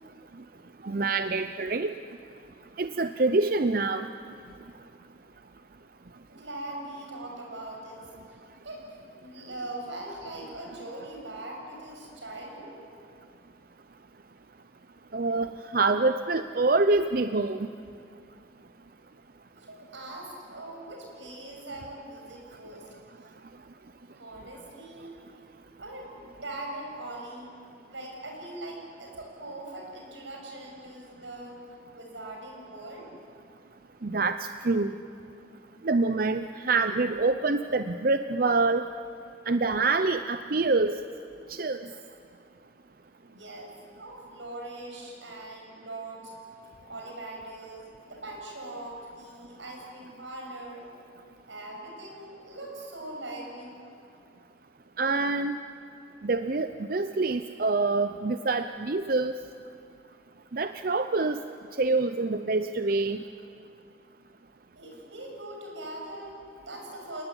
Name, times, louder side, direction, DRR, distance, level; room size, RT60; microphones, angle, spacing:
voice 1, 0.8-1.9 2.8-4.1 15.1-17.7 34.0-35.0 35.8-38.8 39.5-40.9 41.5-41.9 55.0-55.5 56.2-59.3 60.5-61.4 61.8-63.2, right 3 dB, 50° right, 9 dB, 0.7 m, -26 dB
voice 2, 6.3-8.4 8.6-12.8 19.5-22.9 24.1-25.1 25.8-27.5 27.9-31.6 31.9-33.1 43.2-46.3 46.8-50.9 51.5-53.7 64.8-67.2, right 1 dB, 85° right, 0 dB, 7.4 m, -41 dB
29.0 x 19.0 x 9.9 m, 2.5 s
head